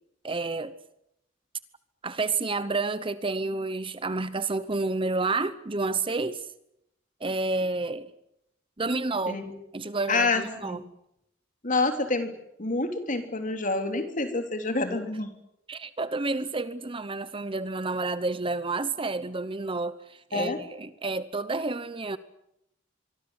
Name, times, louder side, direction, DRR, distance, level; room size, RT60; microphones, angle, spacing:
voice 1, 0.2-0.7 2.0-6.4 7.2-8.1 8.8-9.4 9.7-10.8 15.7-22.2, right 3 dB, 25° right, 0.9 m, -30 dB
voice 2, 10.1-10.8 11.6-12.3 12.6-15.3 20.3-20.6, left 3 dB, 40° left, 3.3 m, -27 dB
25.5 x 23.5 x 8.0 m
head